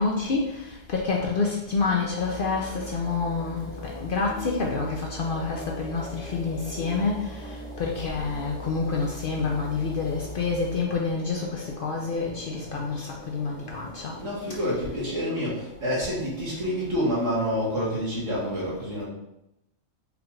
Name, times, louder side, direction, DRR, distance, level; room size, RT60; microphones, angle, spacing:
voice 1, 0.0-7.3 7.8-14.1, left 4 dB, 60° left, -1 dB, 0.6 m, -28 dB
sound 1, 1.7-18.3, equal, 35° right, 1.0 m, -44 dB
sound 2, 2.1-10.8, left 1 dB, 85° left, 1.2 m, -42 dB
voice 2, 14.2-19.1, equal, 75° right, -6 dB, 1.8 m, -28 dB
4.9 x 2.4 x 3.1 m, 0.85 s
omnidirectional pair, 1.3 m